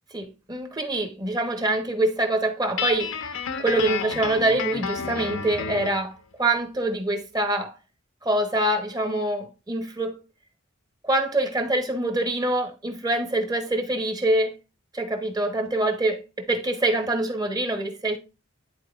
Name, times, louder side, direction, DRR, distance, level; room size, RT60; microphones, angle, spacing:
voice 1, 0.1-3.2 3.6-7.7 8.2-10.2 11.0-14.6 14.9-18.2, right 1 dB, 20° right, 1.0 m, -25 dB
Guitar, 2.8-6.0, left 5 dB, 80° left, 0.9 m, -30 dB
11.0 x 4.3 x 2.4 m
head